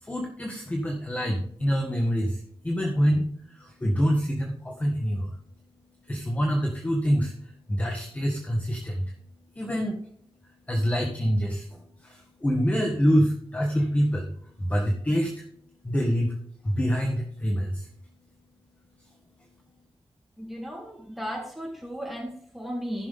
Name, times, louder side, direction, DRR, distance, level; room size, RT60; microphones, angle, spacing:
voice 1, 0.0-5.4 6.0-9.2 9.5-10.0 10.4-15.5 15.8-17.9 19.0-19.1, equal, 15° left, 1 dB, 1.3 m, -26 dB
voice 2, 20.4-23.1, equal, ahead, -3 dB, 3.4 m, -35 dB
15.0 x 6.0 x 3.5 m, 0.62 s
wide cardioid pair, 180°, 10 cm